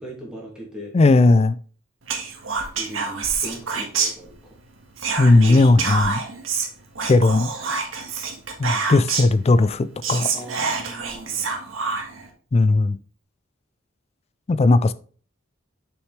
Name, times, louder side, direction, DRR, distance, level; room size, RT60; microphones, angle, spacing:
voice 1, 0.0-1.0 2.8-4.6 5.3-5.6 8.7-8.8 10.3-11.5, right 1 dB, 5° right, 2.5 m, -38 dB
voice 2, 0.9-1.6 5.2-6.2 7.1-7.5 8.6-10.3 12.5-13.0 14.5-14.9, left 2 dB, 30° left, 0.3 m, -17 dB
Whispering, 2.1-4.6 5.0-9.4 9.7-9.8 10.0-12.3, right 5 dB, 75° right, 1.6 m, -27 dB
6.5 x 6.2 x 3.2 m
head